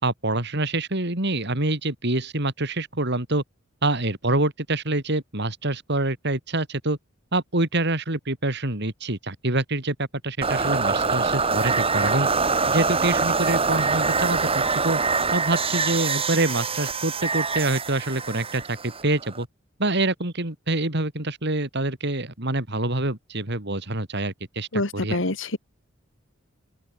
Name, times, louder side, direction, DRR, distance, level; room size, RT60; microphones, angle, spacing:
voice 1, 0.0-3.4 3.8-7.0 7.3-12.3 12.7-15.0 15.3-19.5 19.8-25.2, right 2 dB, 55° right, 3.9 m, -26 dB
sound 1, 10.4-19.4, right 4 dB, 30° right, 2.7 m, -24 dB
voice 2, 24.7-25.6, left 2 dB, 65° left, 2.2 m, -26 dB
open air
head